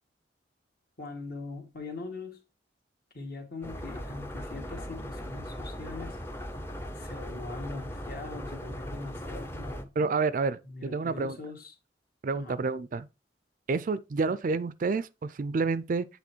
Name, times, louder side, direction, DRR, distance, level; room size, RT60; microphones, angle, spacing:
voice 1, 1.0-2.4 3.1-6.2 7.0-9.9 10.6-11.7 12.3-12.6, left 3 dB, 55° left, 1.8 m, -41 dB
sound 1, 3.6-9.8, equal, 15° left, 0.6 m, -39 dB
voice 2, 10.0-11.4 12.2-13.1 13.7-16.1, right 4 dB, 45° right, 0.4 m, -29 dB
8.5 x 3.4 x 4.4 m
head